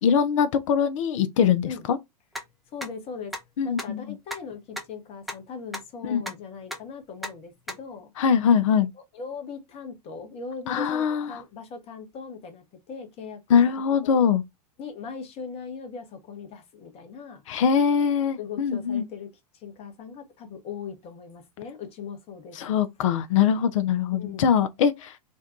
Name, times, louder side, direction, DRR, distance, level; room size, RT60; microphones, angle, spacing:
voice 1, 0.0-2.0 3.6-4.1 6.0-6.2 8.2-8.9 10.7-11.4 13.5-14.4 17.5-19.1 22.6-25.2, left 7 dB, 50° left, 0.4 m, -22 dB
sound 1, 2.3-2.4 2.8-2.9 3.3-3.4 3.8-3.9 4.3-4.4 4.8-4.9 5.3-5.4 5.7-5.8 6.3-6.4 6.7-6.8 7.2-7.3 7.7-7.8, equal, ahead, 0.5 m, -32 dB
voice 2, 2.7-3.4 3.6-8.1 9.1-13.6 14.0-14.3 14.8-17.4 18.4-22.6 24.1-24.5, left 5 dB, 30° left, 0.8 m, -39 dB
2.6 x 2.2 x 3.4 m
figure-of-eight pair, 95°, 21 cm